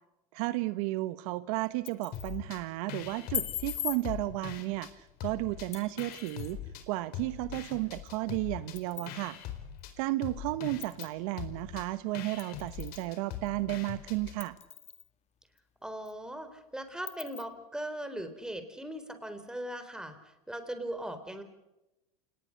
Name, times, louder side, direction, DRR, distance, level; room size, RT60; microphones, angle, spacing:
voice 1, 0.3-4.9 5.2-6.6 6.9-9.4 10.0-14.6, right 18 dB, 70° right, 14 dB, 1.1 m, -33 dB
sound 1, 1.6-2.4 3.3-4.0 5.7-6.5 8.1-8.2 8.8-9.1 9.8-9.9 10.8-11.1 12.4-13.1 13.5-13.6 14.4-15.1 15.6-15.7 16.1-16.2 17.1-17.4, left 10 dB, 35° left, 2.0 m, -39 dB
sound 2, 2.1-2.6 2.9-4.9 5.2-6.8 7.1-14.4, left 10 dB, 55° left, 4.4 m, -42 dB
voice 2, 15.8-21.4, right 1 dB, 5° right, 9 dB, 3.8 m, -39 dB
29.0 x 19.5 x 6.6 m, 0.93 s
supercardioid pair, 115°, 19 cm